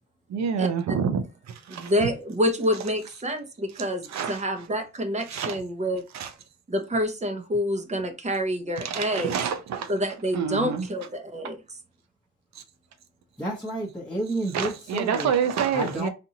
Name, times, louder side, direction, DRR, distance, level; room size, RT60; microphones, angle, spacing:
voice 1, 0.3-2.1 3.8-4.4 5.3-5.6 6.1-6.3 8.8-9.9 10.3-10.9 12.5-12.6 14.5-16.1, right 7 dB, 60° right, 0.7 m, -28 dB
voice 2, 1.7-6.0 6.7-9.4 9.9-11.6, equal, 25° right, 0.8 m, -27 dB
voice 3, 13.4-15.3 15.7-16.1, right 1 dB, 5° left, 1.0 m, -30 dB
4.2 x 2.6 x 2.8 m
cardioid pair, 90°, 30 cm